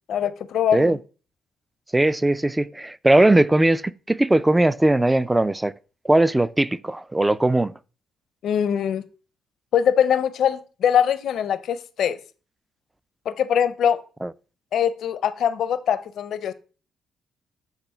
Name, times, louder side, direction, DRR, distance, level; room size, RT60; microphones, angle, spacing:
voice 1, 0.1-1.0 8.4-9.0 9.7-12.2 13.3-14.0 14.7-16.5, left 8 dB, 70° left, 0.6 m, -22 dB
voice 2, 1.9-5.7 6.0-7.7 14.2-14.3, right 1 dB, 10° right, 0.3 m, -19 dB
8.1 x 3.3 x 5.6 m
cardioid pair, 90°, 0 cm